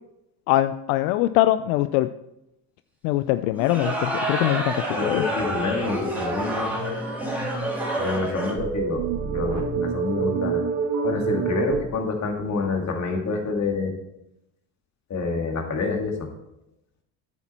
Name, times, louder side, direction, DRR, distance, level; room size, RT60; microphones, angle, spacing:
voice 1, 0.5-2.1 3.0-5.2, left 15 dB, 75° left, 12 dB, 0.5 m, -22 dB
sound 1, 3.5-8.5, right 1 dB, 5° right, 3.0 m, -28 dB
voice 2, 5.0-6.7 8.0-9.0 9.3-10.6 11.0-13.9 15.1-16.3, left 4 dB, 35° left, 2 dB, 2.3 m, -27 dB
sound 2, 6.7-11.8, right 5 dB, 70° right, 2.1 m, -28 dB
9.5 x 8.8 x 4.4 m, 0.87 s
supercardioid pair, 95°, 48 cm